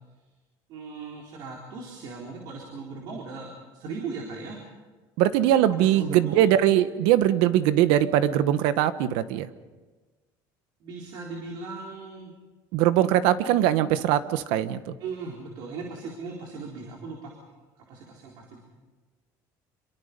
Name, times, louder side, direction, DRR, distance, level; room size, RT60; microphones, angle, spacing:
voice 1, 0.7-4.6 5.7-6.4 10.8-12.3 15.0-18.6, right 4 dB, 60° right, -1 dB, 4.1 m, -38 dB
voice 2, 5.2-9.5 12.7-14.9, right 12 dB, 85° right, 13 dB, 1.2 m, -21 dB
26.5 x 23.0 x 5.3 m, 1.3 s
cardioid pair, 150°, 8 cm